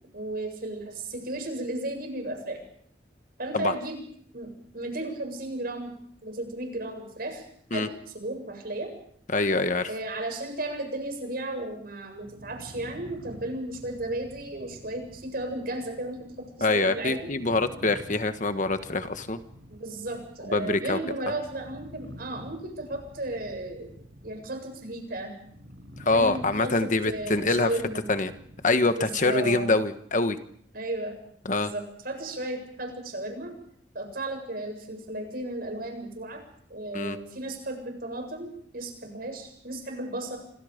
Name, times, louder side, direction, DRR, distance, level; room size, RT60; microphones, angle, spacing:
voice 1, 0.1-2.6 3.4-4.0 4.3-5.9 6.2-7.5 7.7-8.9 9.9-17.3 19.7-23.9 24.2-25.4 26.1-28.1 28.9-29.7 30.7-31.2 31.5-33.5 33.9-36.4 36.7-40.4, right 1 dB, 55° right, 5 dB, 7.6 m, -34 dB
voice 2, 9.3-9.9 16.6-19.4 20.5-21.0 26.0-27.7 28.1-28.3 28.6-30.4 31.4-31.7 36.9-37.2, left 3 dB, 45° left, 9 dB, 1.4 m, -25 dB
sound 1, 12.1-29.4, equal, 85° right, 6.8 m, -48 dB
27.5 x 26.0 x 5.2 m, 0.65 s
head